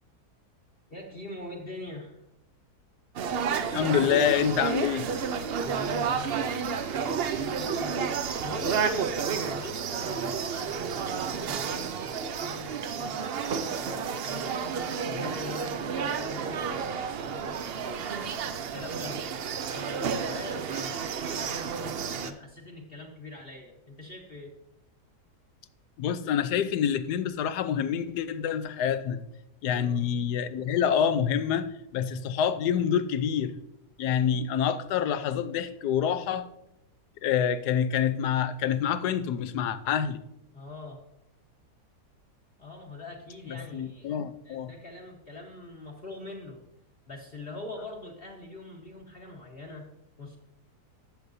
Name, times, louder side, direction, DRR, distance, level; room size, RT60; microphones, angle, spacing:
voice 1, 0.9-2.2 5.6-19.2 19.7-24.5 29.6-30.0 40.5-41.0 42.6-46.6 47.1-49.9 50.2-50.4, left 2 dB, 40° left, 1.3 m, -42 dB
sound 1, 3.2-22.3, right 6 dB, 85° right, 0.5 m, -31 dB
voice 2, 3.7-5.0 26.0-29.2 29.6-33.5 34.0-36.5 37.2-40.2 43.5-44.7, left 8 dB, 75° left, 1.2 m, -27 dB
13.0 x 8.1 x 2.7 m
omnidirectional pair, 1.8 m